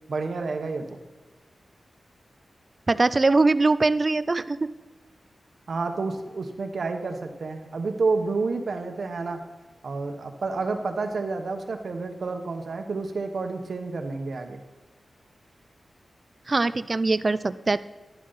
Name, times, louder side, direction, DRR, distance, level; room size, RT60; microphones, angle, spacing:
voice 1, 0.1-1.0 5.7-9.4 9.8-14.6, right 3 dB, 60° right, 5 dB, 1.1 m, -29 dB
voice 2, 2.9-4.7 16.5-17.8, right 3 dB, 30° right, 15 dB, 0.4 m, -22 dB
11.5 x 11.5 x 4.1 m, 1.2 s
wide cardioid pair, 155°, 0 cm